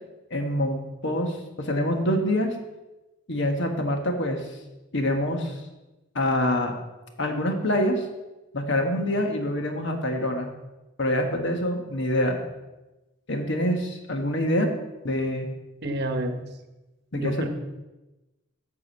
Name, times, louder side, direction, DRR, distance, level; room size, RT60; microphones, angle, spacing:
voice 1, 0.3-2.6 3.3-4.4 4.9-5.5 6.1-6.7 7.2-8.0 8.5-10.5 11.0-12.4 13.3-14.7 15.0-15.5 17.1-17.5, left 1 dB, 60° left, 4 dB, 1.3 m, -25 dB
voice 2, 15.8-16.4 17.1-17.5, right 1 dB, 50° right, 6 dB, 1.0 m, -29 dB
9.6 x 4.9 x 7.1 m, 1.0 s
head